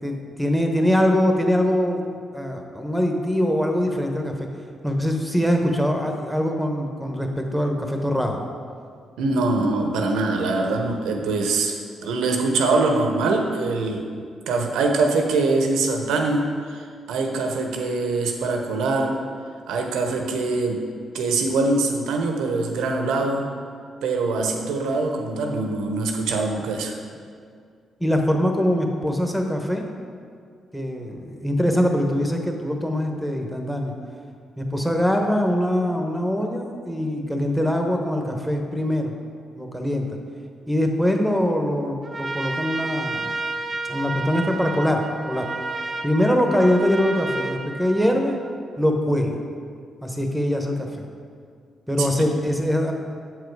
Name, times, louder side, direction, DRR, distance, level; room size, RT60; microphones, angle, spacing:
voice 1, 0.0-2.0 2.3-4.3 4.8-8.4 28.0-29.9 30.7-33.9 34.6-39.2 39.5-40.2 40.7-43.4 43.9-45.0 45.3-45.5 46.0-48.3 48.8-49.4 50.0-51.0 51.9-52.9, equal, ahead, 3 dB, 1.1 m, -23 dB
voice 2, 9.2-11.8 12.0-14.1 14.5-19.2 19.7-20.8 21.1-23.5 24.0-27.0 52.0-52.1, right 3 dB, 80° right, 3 dB, 0.8 m, -23 dB
Trumpet, 42.0-48.6, right 3 dB, 35° right, 0.6 m, -31 dB
7.3 x 4.9 x 4.7 m, 2.2 s
hypercardioid pair, 50°, 0 cm